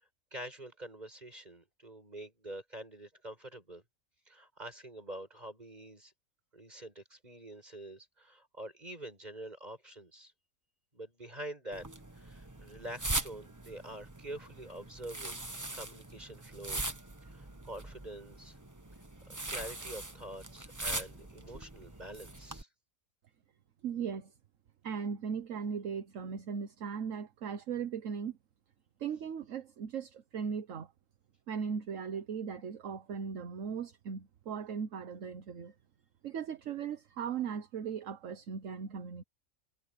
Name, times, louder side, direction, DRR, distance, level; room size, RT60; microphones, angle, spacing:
voice 1, 0.3-3.8 4.3-6.1 6.5-10.3 10.9-11.9 12.1-15.4 15.7-16.8 17.2-18.6 19.3-22.7, right 1 dB, 30° right, 6.5 m, -46 dB
sound 1, 11.7-22.6, right 2 dB, 15° right, 1.2 m, -41 dB
voice 2, 23.8-24.3 24.8-28.4 29.0-30.9 31.5-35.7 36.2-39.2, right 7 dB, 65° right, 1.4 m, -38 dB
omnidirectional pair, 1.4 m